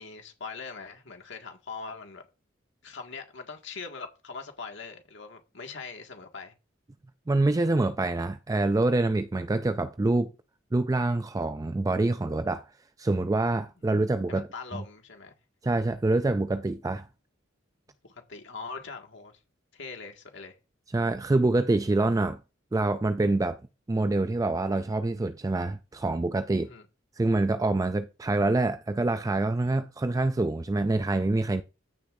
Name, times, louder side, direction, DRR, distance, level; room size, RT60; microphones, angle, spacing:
voice 1, 0.0-2.2 2.8-6.5 14.3-15.3 18.0-19.4 19.7-20.5 26.6-26.9, left 4 dB, 70° left, 1.9 m, -41 dB
voice 2, 7.3-10.3 10.7-12.7 13.0-14.5 14.7-14.8 15.6-17.1 20.9-22.4 22.7-23.6 23.9-26.7 27.2-31.6, right 2 dB, 20° right, 0.4 m, -26 dB
14.0 x 6.5 x 2.6 m
head